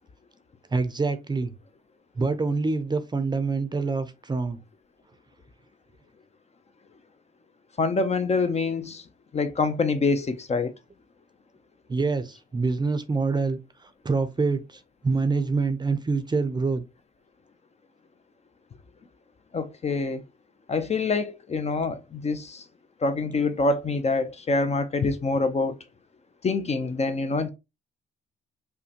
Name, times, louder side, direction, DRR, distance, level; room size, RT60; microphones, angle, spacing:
voice 1, 0.7-1.6 2.2-4.6 11.9-16.8, right 4 dB, 20° right, 0.5 m, -26 dB
voice 2, 7.8-9.0 9.3-10.7 19.5-20.2 20.7-22.6 23.0-25.8 26.4-27.5, left 3 dB, 35° left, 0.5 m, -25 dB
5.4 x 2.1 x 2.8 m
cardioid pair, 90°, 20 cm